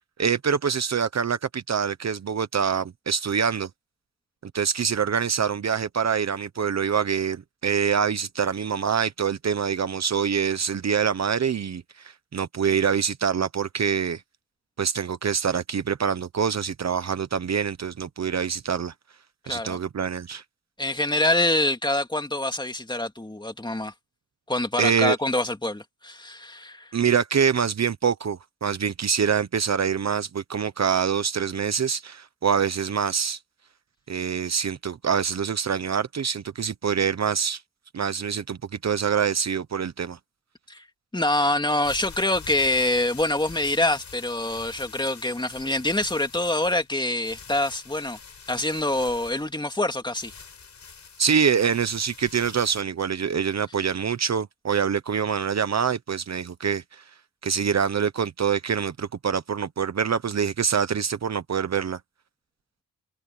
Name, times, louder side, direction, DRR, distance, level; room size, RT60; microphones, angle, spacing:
voice 1, 0.2-3.7 4.4-14.2 14.8-18.9 19.5-20.4 24.8-25.2 26.9-33.4 34.1-37.6 37.9-40.2 51.2-57.0 57.4-62.0, right 7 dB, 50° right, 1.0 m, -25 dB
voice 2, 19.4-19.8 20.8-23.9 24.5-26.9 40.7-40.8 41.1-48.2 48.5-50.3, left 1 dB, 15° left, 2.3 m, -25 dB
sound 1, 41.6-52.8, left 6 dB, 55° left, 4.3 m, -45 dB
wide cardioid pair, 115°, 34 cm